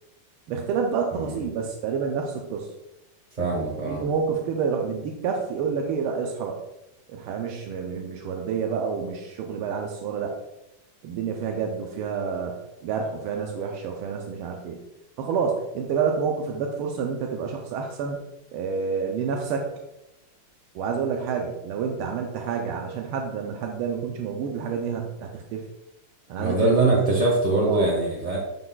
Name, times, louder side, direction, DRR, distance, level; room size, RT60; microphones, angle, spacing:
voice 1, 0.5-2.7 3.8-6.6 7.1-10.4 11.0-14.8 15.2-18.2 18.5-19.7 20.7-25.7 26.3-26.8 27.6-27.9, right 6 dB, 90° right, 1 dB, 1.5 m, -28 dB
voice 2, 1.1-1.4 3.4-4.0 26.4-28.4, right 2 dB, 35° right, -3 dB, 0.8 m, -23 dB
11.0 x 3.9 x 2.3 m, 0.93 s
omnidirectional pair, 2.4 m